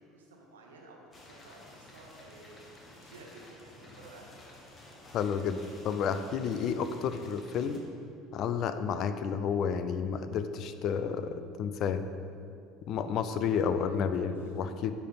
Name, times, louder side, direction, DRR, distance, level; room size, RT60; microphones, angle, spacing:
voice 1, 0.0-2.6 2.9-4.4 13.6-14.4, right 2 dB, 80° right, 0 dB, 0.9 m, -53 dB
sound 1, 1.1-7.8, left 1 dB, 30° left, 1.2 m, -52 dB
voice 2, 5.1-5.6 5.8-7.8 8.3-12.0 12.9-14.9, left 7 dB, 55° left, 11 dB, 0.4 m, -31 dB
9.9 x 3.4 x 4.0 m, 2.5 s
hypercardioid pair, 70°, 0 cm